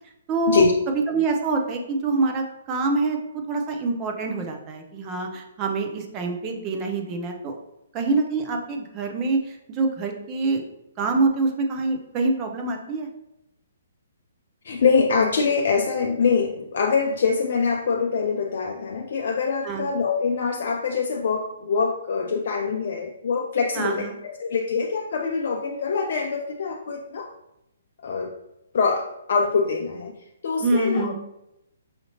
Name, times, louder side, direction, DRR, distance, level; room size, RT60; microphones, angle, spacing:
voice 1, 0.3-0.6 1.1-3.2 3.5-7.5 7.9-10.6 11.0-13.1 19.6-19.9 23.8-24.1 30.6-31.1, right 3 dB, 25° right, 3 dB, 0.7 m, -25 dB
voice 2, 14.6-27.3 28.0-28.3 28.7-30.2 30.4-31.1, left 5 dB, 55° left, 2 dB, 0.4 m, -24 dB
5.7 x 2.8 x 2.8 m, 0.84 s
figure-of-eight pair, 130°, 0 cm